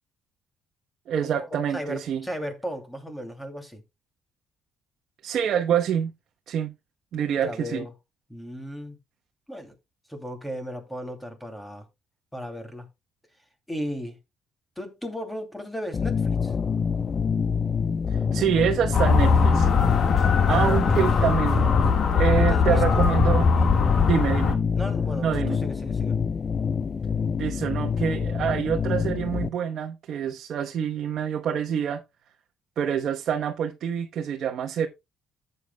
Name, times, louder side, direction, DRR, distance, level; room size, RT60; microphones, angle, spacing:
voice 1, 1.1-2.2 5.2-6.1 6.5-6.7 7.1-7.8 18.3-19.7 20.5-21.7 22.1-23.5 24.1-24.6 25.2-25.6 27.4-32.0 32.8-34.9, right 8 dB, 60° right, 1.0 m, -26 dB
voice 2, 1.7-3.8 7.4-7.9 8.3-9.0 9.5-9.7 10.1-11.8 12.3-12.9 13.7-14.2 14.8-16.5 20.5-20.8 22.4-23.2 23.6-23.7 24.7-26.2, equal, 5° left, 2.6 m, -35 dB
sound 1, 15.9-29.5, left 6 dB, 35° left, 0.4 m, -27 dB
Motor vehicle (road) / Siren, 18.9-24.6, left 5 dB, 50° left, 1.6 m, -21 dB
13.5 x 8.0 x 2.2 m
cardioid pair, 110°, 0 cm